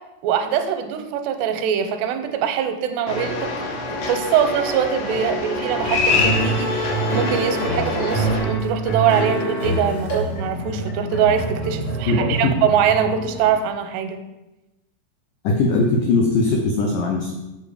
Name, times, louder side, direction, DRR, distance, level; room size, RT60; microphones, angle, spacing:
voice 1, 0.2-3.7 4.0-14.2, right 8 dB, 85° right, 8 dB, 2.7 m, -23 dB
sound 1, 3.1-8.4, left 3 dB, 65° left, 2.4 m, -25 dB
sound 2, 5.8-13.6, right 1 dB, 45° left, 1.8 m, -26 dB
voice 2, 12.1-12.5 15.4-17.3, left 3 dB, 85° left, 1 dB, 1.8 m, -20 dB
7.9 x 5.9 x 4.9 m, 0.99 s
omnidirectional pair, 4.9 m